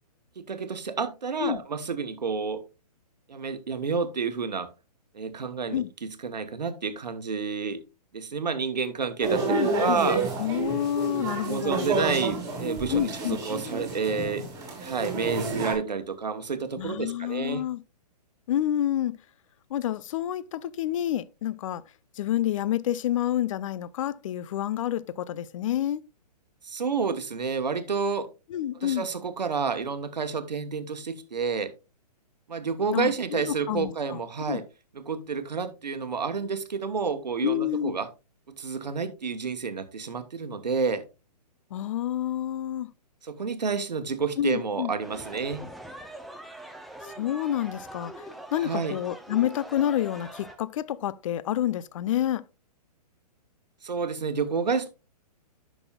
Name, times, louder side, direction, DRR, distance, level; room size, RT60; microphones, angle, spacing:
voice 1, 0.4-2.6 3.3-4.7 5.1-7.8 8.1-10.2 11.4-14.5 14.8-17.6 26.6-28.3 28.7-31.7 32.5-34.7 34.9-38.1 38.5-41.0 43.2-45.7 48.6-49.0 53.8-54.9, right 5 dB, 85° right, 1.0 m, -29 dB
sound 1, 9.2-15.7, right 3 dB, 15° right, 3.3 m, -30 dB
voice 2, 9.5-10.0 10.4-11.9 12.9-13.4 16.8-17.8 18.5-19.1 19.7-21.8 22.2-26.0 28.5-29.1 32.9-34.2 34.5-34.6 37.4-37.9 41.7-42.9 44.4-44.9 47.0-48.3 48.5-52.4, left 11 dB, 50° left, 0.5 m, -28 dB
sound 2, 45.0-50.6, right 1 dB, ahead, 0.7 m, -43 dB
10.5 x 6.1 x 2.2 m
hypercardioid pair, 130°, 21 cm